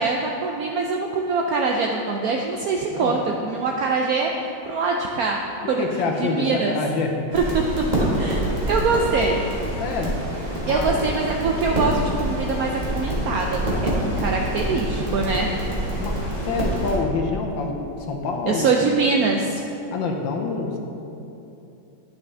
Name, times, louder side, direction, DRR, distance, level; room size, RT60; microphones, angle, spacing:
voice 1, 0.0-4.3 4.7-5.4 5.7-5.8 6.2-6.7 7.3-7.6 8.2-8.4 8.7-9.5 10.7-13.9 14.2-15.5 18.5-19.6, right 4 dB, 75° right, 1 dB, 0.8 m, -23 dB
voice 2, 5.6-7.2 9.8-10.2 10.7-11.2 14.1-14.5 15.1-15.3 16.0-16.2 16.4-18.7 19.9-20.8, left 4 dB, 80° left, 1 dB, 1.6 m, -27 dB
sound 1, 7.3-17.0, right 1 dB, 25° right, 1.7 m, -26 dB
11.0 x 6.0 x 3.3 m, 2.9 s
omnidirectional pair, 2.1 m